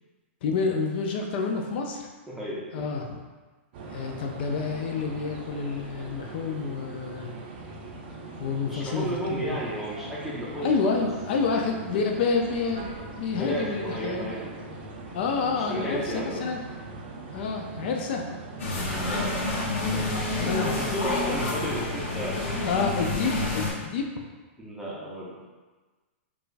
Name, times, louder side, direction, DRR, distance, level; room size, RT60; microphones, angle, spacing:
voice 1, 0.4-2.1 2.7-3.2 3.9-7.3 8.4-9.6 10.6-12.9 13.2-14.3 15.1-16.6 17.3-18.2 20.4-20.7 22.6-24.0, left 4 dB, 50° left, 2 dB, 0.5 m, -28 dB
voice 2, 2.3-2.9 8.7-11.7 13.4-14.8 15.5-16.5 18.9-19.6 19.9-22.9 24.6-25.4, equal, 5° right, -7 dB, 0.6 m, -34 dB
sound 1, 3.7-23.4, right 3 dB, 50° right, 0.6 m, -41 dB
sound 2, 18.6-23.7, left 2 dB, 85° left, 1.0 m, -29 dB
4.9 x 2.4 x 2.5 m, 1.3 s
hypercardioid pair, 155°, 7 cm